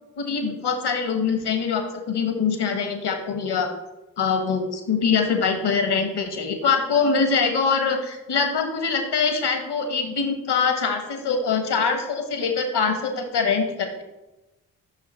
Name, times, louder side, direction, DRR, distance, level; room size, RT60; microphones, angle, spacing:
voice 1, 0.2-3.7 4.2-14.0, left 5 dB, 55° left, 5 dB, 1.4 m, -23 dB
5.8 x 5.8 x 4.4 m, 1.0 s
hypercardioid pair, 40°, 47 cm